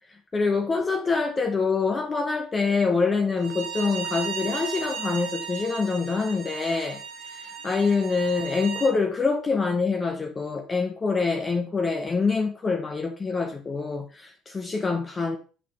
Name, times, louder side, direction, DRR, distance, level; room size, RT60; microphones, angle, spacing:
voice 1, 0.1-7.0 7.3-15.4, left 4 dB, 30° left, 4 dB, 1.0 m, -25 dB
Bowed string instrument, 3.4-8.9, right 7 dB, 65° right, 1.6 m, -35 dB
8.1 x 4.0 x 3.2 m, 0.36 s
hypercardioid pair, 60°, 0 cm